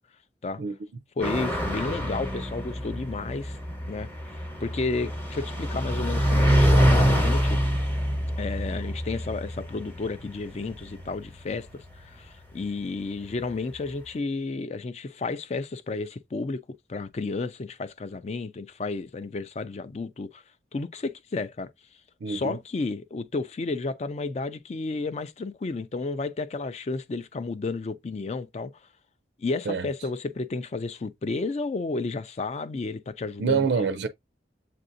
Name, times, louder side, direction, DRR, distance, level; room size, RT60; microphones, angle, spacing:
voice 1, 1.2-3.6 3.9-4.1 4.6-7.6 8.4-16.6 16.9-20.4 20.7-21.7 22.3-28.7 29.4-33.8, left 3 dB, 40° left, 0.4 m, -32 dB
sound 1, 1.2-12.2, equal, 10° left, 0.9 m, -25 dB
voice 2, 22.2-22.6 29.7-29.8 33.4-34.1, right 5 dB, 75° right, 0.4 m, -26 dB
7.6 x 2.6 x 2.5 m
head